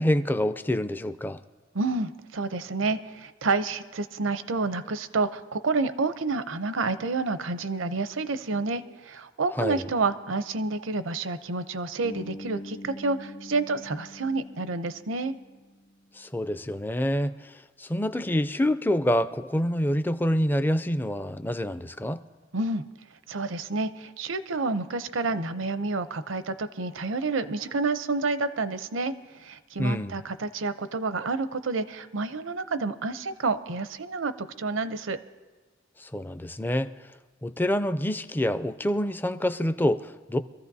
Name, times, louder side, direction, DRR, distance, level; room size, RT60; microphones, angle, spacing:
voice 1, 0.0-1.4 9.6-9.8 16.2-17.5 17.8-22.2 29.8-30.2 36.0-36.9 37.4-40.4, left 1 dB, 10° left, 0.4 m, -26 dB
voice 2, 1.7-15.3 22.5-22.8 23.3-35.2, right 3 dB, 80° right, 0.7 m, -29 dB
Bass guitar, 12.0-16.0, left 1 dB, 60° left, 1.1 m, -44 dB
25.0 x 14.5 x 2.7 m
head